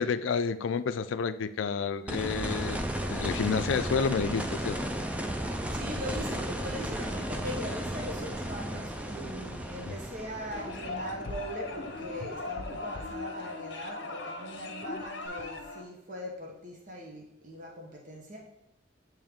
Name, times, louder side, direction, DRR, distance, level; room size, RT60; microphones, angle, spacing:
voice 1, 0.0-4.8 9.9-10.0, left 5 dB, 85° left, 13 dB, 0.4 m, -30 dB
sound 1, 2.1-13.0 15.3-15.4, right 1 dB, 5° right, 0.4 m, -35 dB
voice 2, 5.3-18.4, equal, 40° right, -2 dB, 1.0 m, -41 dB
sound 2, 10.5-15.8, left 3 dB, 65° left, 0.8 m, -39 dB
8.5 x 3.2 x 3.6 m, 0.81 s
head